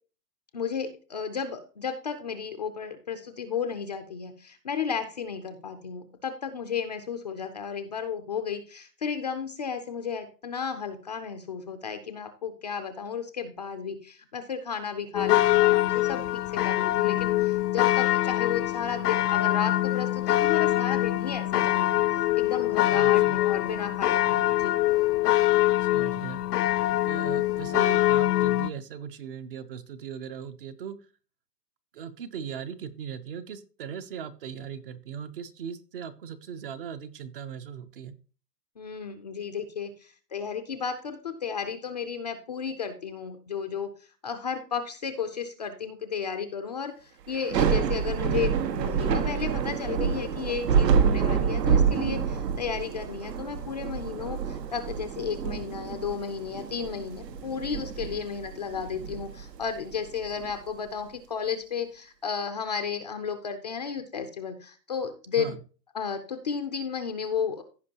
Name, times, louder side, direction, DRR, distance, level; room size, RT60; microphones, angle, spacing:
voice 1, 0.5-24.8 38.8-43.9 44.2-65.6 65.9-67.6, left 6 dB, 25° left, 7 dB, 0.4 m, -33 dB
sound 1, 15.1-28.7, left 15 dB, 70° left, 0.7 m, -24 dB
voice 2, 22.9-23.4 25.8-26.4 26.9-31.0 31.9-38.1 65.4-65.6, right 7 dB, 35° right, 13 dB, 0.6 m, -38 dB
Thunder / Rain, 47.3-60.5, right 6 dB, 80° right, 1.5 m, -27 dB
15.5 x 5.3 x 2.8 m, 0.37 s
hypercardioid pair, 160°, 49 cm